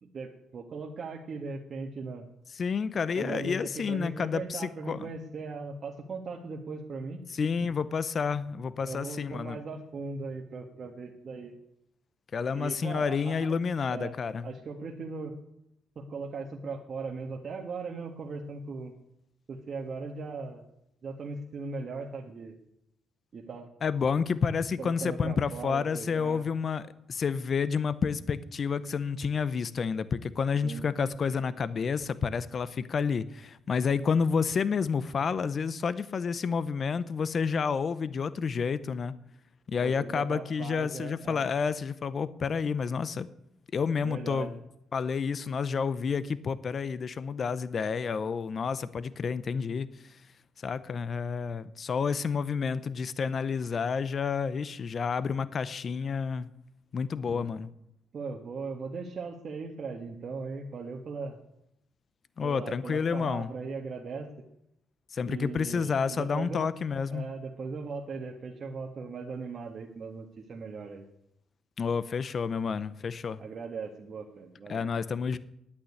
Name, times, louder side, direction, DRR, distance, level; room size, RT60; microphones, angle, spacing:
voice 1, 0.0-2.3 3.1-7.2 8.8-11.5 12.5-13.5 13.9-14.1 14.4-15.3 15.9-18.9 19.5-20.6 21.0-22.5 23.3-23.7 24.8-26.4 30.6-30.8 39.8-41.4 44.0-44.5 57.3-57.5 58.1-61.4 62.4-64.3 65.2-66.7 67.1-71.0 73.4-74.9, right 4 dB, 50° right, 1 dB, 1.6 m, -38 dB
voice 2, 2.5-5.1 7.3-9.6 12.3-14.5 23.8-26.8 27.1-39.1 39.7-43.3 43.7-44.6 44.9-50.2 50.6-56.5 56.9-57.7 62.4-63.5 65.1-67.3 71.8-73.4 74.7-75.4, left 6 dB, 45° left, 16 dB, 0.7 m, -30 dB
9.8 x 8.9 x 9.7 m, 0.80 s
cardioid pair, 90°, 0 cm